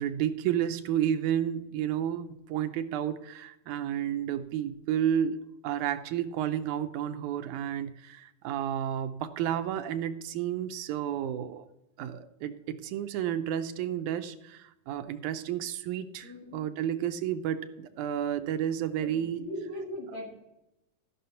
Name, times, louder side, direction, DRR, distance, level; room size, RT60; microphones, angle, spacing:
voice 1, 0.0-11.7 12.0-19.4, right 10 dB, 80° right, 9 dB, 2.1 m, -31 dB
voice 2, 16.2-16.6 19.0-20.4, left 1 dB, 45° left, -4 dB, 2.6 m, -39 dB
14.0 x 6.0 x 5.7 m, 0.87 s
omnidirectional pair, 3.5 m